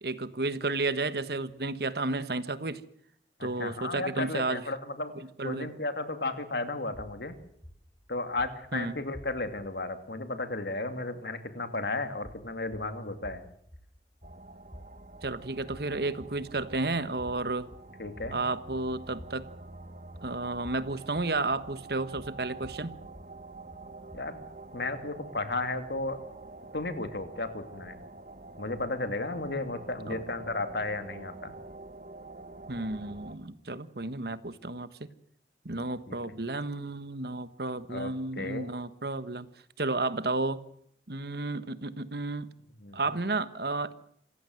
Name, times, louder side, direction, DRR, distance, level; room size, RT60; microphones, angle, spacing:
voice 1, 0.0-2.8 3.4-4.6 5.1-5.7 8.7-9.0 15.2-17.7 18.3-19.5 20.2-22.9 30.1-30.2 32.7-35.1 35.6-39.5 39.8-40.6 41.1-42.5 42.9-43.9, right 2 dB, 60° right, 13 dB, 1.4 m, -32 dB
voice 2, 3.4-5.1 5.4-7.4 8.1-13.4 18.0-18.4 24.1-24.4 24.7-26.2 26.7-28.0 28.6-31.5 36.1-36.2 37.9-38.1 38.4-38.7 42.8-43.0, left 2 dB, 70° left, 8 dB, 2.6 m, -34 dB
sound 1, 6.9-9.7 12.1-24.5, equal, 20° left, 4.1 m, -52 dB
sound 2, 14.2-33.4, right 2 dB, 45° right, 1.4 m, -47 dB
27.0 x 15.5 x 7.8 m, 0.67 s
head